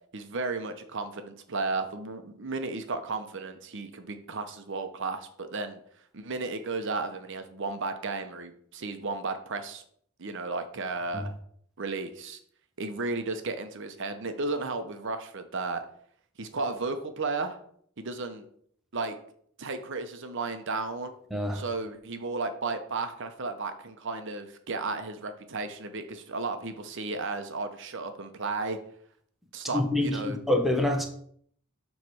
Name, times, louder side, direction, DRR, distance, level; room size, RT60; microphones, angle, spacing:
voice 1, 0.1-5.8 6.1-9.8 10.2-11.3 11.8-12.4 12.8-15.8 16.4-17.6 18.0-18.5 18.9-19.2 19.6-21.1 21.5-28.8 29.5-30.4, right 3 dB, 55° right, 0.8 m, -34 dB
voice 2, 21.3-21.6 29.7-31.1, left 1 dB, ahead, 0.9 m, -26 dB
7.4 x 3.2 x 6.2 m
head